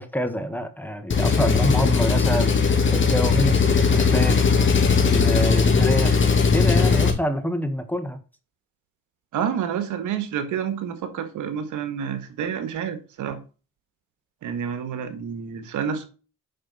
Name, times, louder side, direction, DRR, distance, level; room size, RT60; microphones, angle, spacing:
voice 1, 0.0-4.5 5.0-6.2 6.5-8.2, equal, 5° left, 1.6 m, -27 dB
Engine, 1.1-7.1, left 5 dB, 40° left, 2.3 m, -19 dB
voice 2, 9.3-13.4 14.4-16.1, right 8 dB, 80° right, 1.7 m, -29 dB
8.7 x 6.2 x 4.2 m
cardioid pair, 90°, 30 cm